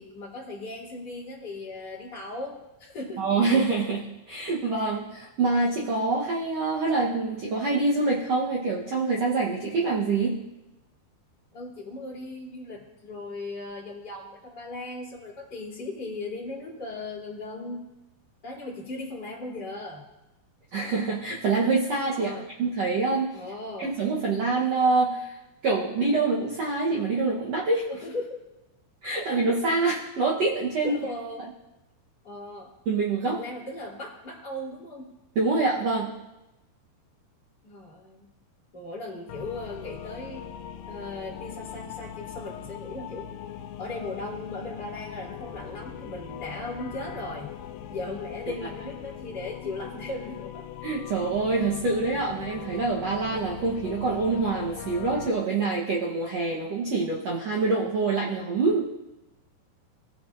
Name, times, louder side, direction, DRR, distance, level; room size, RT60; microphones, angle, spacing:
voice 1, 0.0-3.3 11.5-17.8 18.4-20.0 22.1-22.5 23.3-24.0 27.9-28.4 29.1-29.5 30.8-31.4 32.2-32.7 33.3-35.1 37.6-38.3 38.7-40.4 40.9-43.3 43.8-47.5 47.9-50.6, left 2 dB, 25° left, -5 dB, 3.6 m, -37 dB
voice 2, 3.2-10.4 20.7-22.3 22.6-23.3 23.8-25.3 25.6-27.8 29.0-31.0 32.9-33.4 35.3-36.1 50.8-58.9, right 3 dB, 65° right, -4 dB, 1.6 m, -25 dB
sound 1, 39.3-55.3, left 9 dB, 80° left, 2.3 m, -40 dB
19.0 x 9.7 x 2.6 m, 0.96 s
omnidirectional pair, 4.6 m